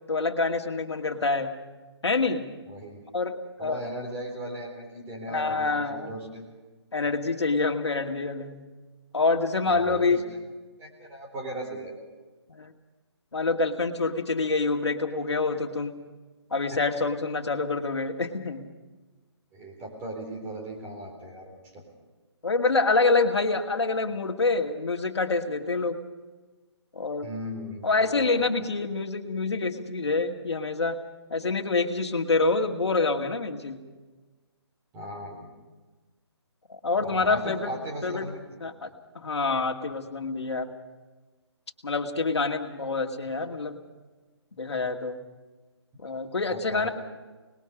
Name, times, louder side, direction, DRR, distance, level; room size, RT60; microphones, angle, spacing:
voice 1, 0.1-1.6 2.0-2.5 3.1-3.9 5.3-6.1 6.9-8.6 9.1-10.3 12.5-12.7 13.3-15.9 16.5-18.7 22.4-26.0 26.9-27.3 27.8-31.0 31.3-33.8 36.7-37.7 38.0-38.3 38.6-38.9 39.2-40.7 41.8-43.8 44.5-45.2 46.0-46.9, left 3 dB, 70° left, 3 dB, 2.1 m, -26 dB
voice 2, 2.7-3.0 3.6-6.5 7.0-7.1 9.6-10.2 10.8-11.9 19.5-21.8 27.2-28.7 34.9-35.5 37.0-38.4 46.5-46.9, right 1 dB, 15° right, 0 dB, 4.0 m, -38 dB
25.5 x 20.5 x 5.1 m, 1.2 s
figure-of-eight pair, 150°, 15 cm